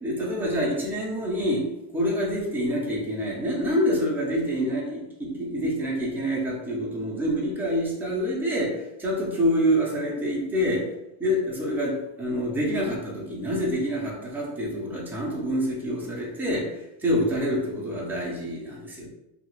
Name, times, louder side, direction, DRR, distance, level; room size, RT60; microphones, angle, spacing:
voice 1, 0.0-10.9 11.2-16.7 17.0-19.1, equal, 5° right, -5 dB, 0.4 m, -27 dB
2.8 x 2.4 x 3.0 m, 0.91 s
cardioid pair, 160°, 50 cm